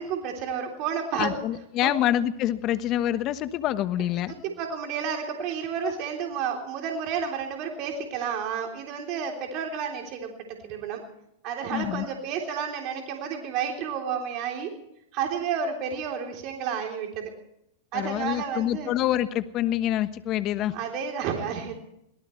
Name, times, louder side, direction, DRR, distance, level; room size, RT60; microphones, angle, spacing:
voice 1, 0.0-1.3 1.8-1.9 4.3-11.0 11.4-14.7 15.1-17.3 17.9-18.9 20.7-21.7, right 7 dB, 50° right, 2 dB, 3.4 m, -31 dB
voice 2, 1.2-4.3 11.7-12.0 17.9-20.7, left 12 dB, 40° left, 12 dB, 1.2 m, -26 dB
24.5 x 18.0 x 3.2 m, 0.79 s
hypercardioid pair, 105°, 0 cm